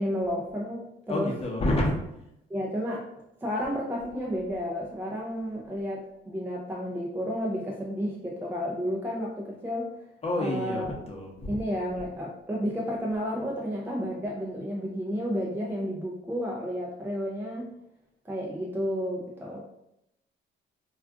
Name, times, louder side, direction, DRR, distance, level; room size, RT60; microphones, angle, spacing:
voice 1, 0.0-1.3 2.5-3.0 3.4-9.9 10.4-10.9 11.5-17.7 18.2-19.6, equal, 10° right, -3 dB, 0.5 m, -31 dB
voice 2, 1.1-1.9 10.2-11.6, left 1 dB, 30° left, -1 dB, 0.9 m, -28 dB
2.4 x 2.3 x 3.5 m, 0.82 s
cardioid pair, 90°, 20 cm